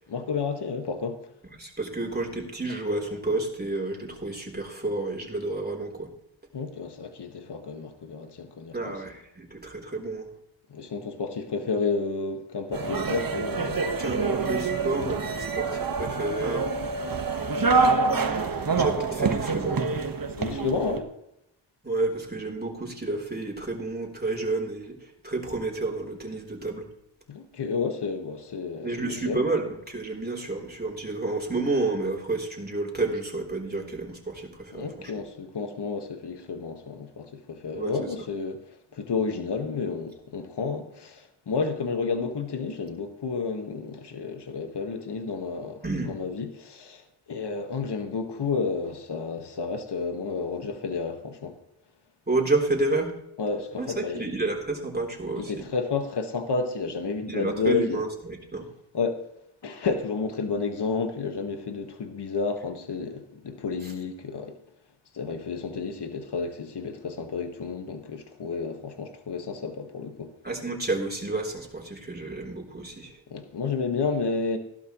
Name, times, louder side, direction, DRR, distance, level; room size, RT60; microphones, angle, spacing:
voice 1, 0.1-1.2 6.5-8.9 10.7-13.8 20.4-21.1 27.3-29.4 34.7-38.6 38.9-51.6 53.4-54.3 55.4-58.0 58.9-59.2 59.6-64.6 65.1-70.3 73.3-74.6, left 4 dB, 60° left, 1.7 m, -31 dB
voice 2, 1.6-6.1 8.7-10.3 14.0-16.7 18.1-19.9 21.8-26.9 28.8-35.1 37.7-38.0 45.8-46.1 52.3-53.1 53.8-55.7 57.3-58.7 63.8-63.9 70.4-73.2, right 2 dB, 20° right, 3.6 m, -30 dB
sound 1, 12.7-21.0, right 4 dB, 45° right, 1.5 m, -26 dB
16.0 x 12.0 x 3.1 m
cardioid pair, 50°, 46 cm